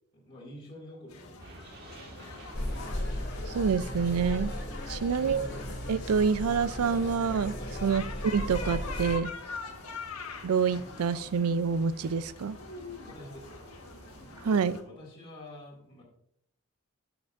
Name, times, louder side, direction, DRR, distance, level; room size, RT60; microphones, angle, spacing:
voice 1, 0.1-2.4 7.6-7.8 9.7-9.8 13.0-13.7 14.4-16.0, left 1 dB, 25° left, -6 dB, 2.1 m, -49 dB
sound 1, 1.1-14.8, left 4 dB, 85° left, 1.3 m, -44 dB
sound 2, 1.4-14.5, right 1 dB, 45° right, 1.7 m, -53 dB
sound 3, 2.5-9.2, left 1 dB, 50° left, 2.2 m, -36 dB
voice 2, 3.5-4.5 4.9-5.5 5.9-7.5 7.8-8.0 8.3-9.3 10.4-12.6 14.4-14.8, right 6 dB, 85° right, 16 dB, 0.4 m, -27 dB
14.0 x 6.0 x 2.5 m, 0.71 s
head